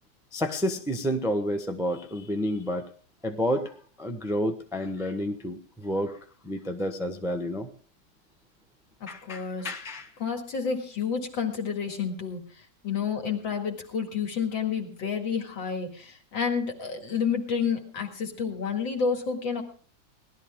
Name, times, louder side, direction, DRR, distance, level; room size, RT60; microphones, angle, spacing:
voice 1, 0.3-2.9 3.2-6.2 6.4-7.7 9.1-10.1, equal, 5° right, 5 dB, 0.6 m, -30 dB
voice 2, 9.0-9.7 10.2-19.6, left 6 dB, 65° left, 4 dB, 2.8 m, -30 dB
18.5 x 12.0 x 3.6 m, 0.41 s
omnidirectional pair, 2.2 m